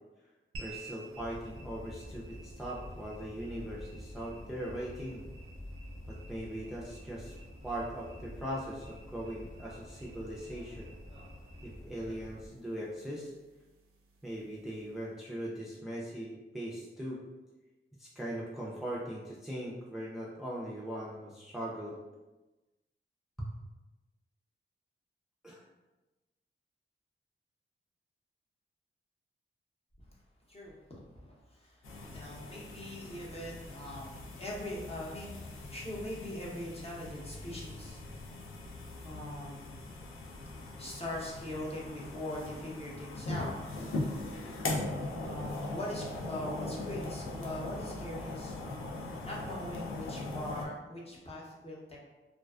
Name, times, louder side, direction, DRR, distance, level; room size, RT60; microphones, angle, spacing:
sound 1, 0.5-15.2, right 2 dB, 90° right, 0.4 m, -55 dB
voice 1, 0.6-5.2 6.1-7.4 7.6-10.9 11.6-13.3 14.2-17.2 18.0-22.0 23.4-23.5 25.4-25.6, right 1 dB, ahead, -5 dB, 0.4 m, -40 dB
sound 2, 1.1-12.5, left 1 dB, 65° left, 0.8 m, -48 dB
voice 2, 30.5-35.4 35.7-38.3 39.0-40.0 40.8-43.5 45.2-48.6 49.2-52.0, left 1 dB, 30° left, -4 dB, 0.7 m, -42 dB
sound 3, 31.8-50.7, left 2 dB, 80° left, 0.4 m, -40 dB
2.4 x 2.2 x 2.3 m, 1.1 s
cardioid pair, 65°, 21 cm